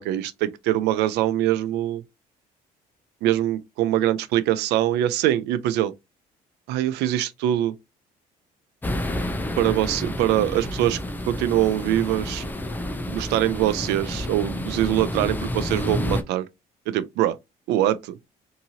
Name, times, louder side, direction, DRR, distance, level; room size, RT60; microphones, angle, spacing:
voice 1, 0.0-2.0 3.2-5.9 6.7-7.7 9.6-11.0 11.3-12.4 13.1-16.5 16.9-17.4 17.7-18.1, right 13 dB, 85° right, 0.4 m, -23 dB
sound 1, 8.8-16.2, left 1 dB, 10° left, 0.4 m, -29 dB
2.8 x 2.6 x 2.7 m
cardioid pair, 110°, 17 cm